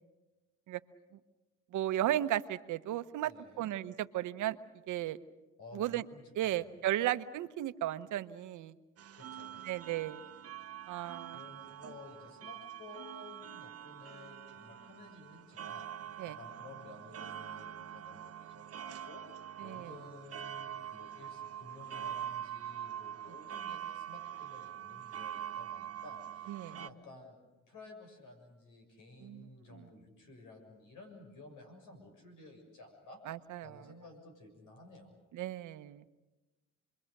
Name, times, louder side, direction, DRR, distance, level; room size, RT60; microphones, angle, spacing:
voice 1, 1.7-3.3 3.6-4.6 4.9-5.2 5.7-6.0 6.3-8.7 9.6-10.2 10.9-11.4 16.2-16.4 19.6-19.9 26.5-26.8 29.2-29.4 29.7-29.9 33.3-33.8 35.3-36.0, right 13 dB, 80° right, 12 dB, 0.9 m, -35 dB
voice 2, 3.2-3.7 5.6-6.8 9.1-10.0 11.0-11.1 11.3-19.2 19.6-27.4 27.7-33.2 33.6-35.2, left 2 dB, 85° left, 4 dB, 6.7 m, -54 dB
sound 1, 9.0-26.9, right 10 dB, 50° right, 0.9 m, -44 dB
29.0 x 22.5 x 6.6 m, 1.1 s
cardioid pair, 90°, 30 cm